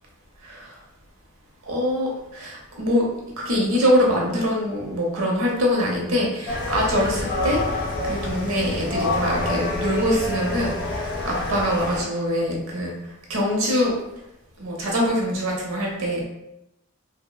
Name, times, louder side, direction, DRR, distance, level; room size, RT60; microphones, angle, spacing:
voice 1, 0.4-0.8 1.6-3.1 3.4-14.0 14.6-16.2, equal, 85° right, -2 dB, 0.8 m, -24 dB
sound 1, 6.5-12.0, left 2 dB, 55° left, 0.5 m, -27 dB
3.5 x 2.0 x 2.3 m, 0.88 s
head